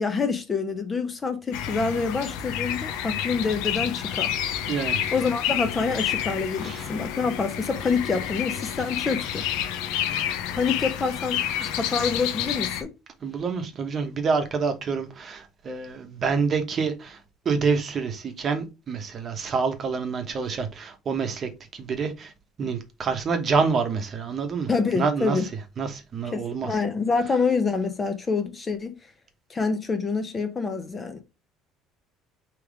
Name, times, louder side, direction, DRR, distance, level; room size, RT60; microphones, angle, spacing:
voice 1, 0.0-4.3 5.1-9.4 10.5-12.9 24.7-25.4 26.3-29.0 29.5-31.2, left 4 dB, 20° left, 0.7 m, -26 dB
sound 1, 1.5-12.8, left 10 dB, 85° left, 0.6 m, -29 dB
voice 2, 4.7-5.0 6.6-6.9 13.2-17.2 17.4-22.3 22.6-24.7 25.0-25.4 25.8-26.8, right 5 dB, 35° right, 0.9 m, -27 dB
3.5 x 3.1 x 4.7 m
cardioid pair, 135°, 0 cm